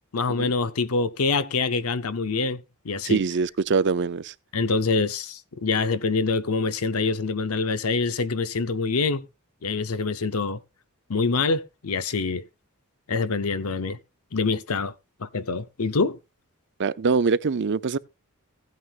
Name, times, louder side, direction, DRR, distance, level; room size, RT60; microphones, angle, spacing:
voice 1, 0.1-3.2 4.5-9.3 9.6-10.6 11.1-12.4 13.1-14.0 14.3-14.9 15.2-16.2, left 4 dB, 75° left, 0.8 m, -25 dB
voice 2, 3.0-4.3 16.8-18.0, right 4 dB, 55° right, 0.5 m, -23 dB
16.0 x 9.4 x 2.4 m
head